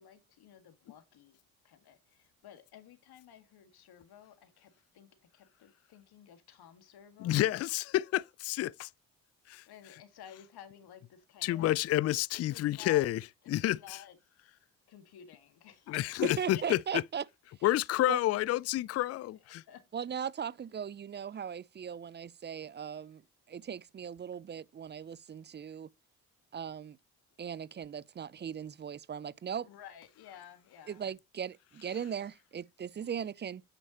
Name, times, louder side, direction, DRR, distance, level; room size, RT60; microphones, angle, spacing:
voice 1, 0.0-1.4 1.6-7.5 9.7-11.7 12.5-13.0 13.6-14.2 14.9-16.1 16.5-16.6 19.1-19.8 29.6-31.0 33.0-33.1, left 9 dB, 65° left, 1.9 m, -53 dB
voice 2, 7.2-8.9 9.5-9.6 11.4-13.2 13.5-14.0 15.9-17.0 17.6-19.6, left 15 dB, 40° left, 0.4 m, -29 dB
voice 3, 16.4-17.2 18.1-18.2 19.9-23.2 23.5-25.9 26.5-27.0 27.4-29.7 30.9-33.6, right 8 dB, 25° right, 0.5 m, -38 dB
9.1 x 6.2 x 2.9 m
hypercardioid pair, 50°, 42 cm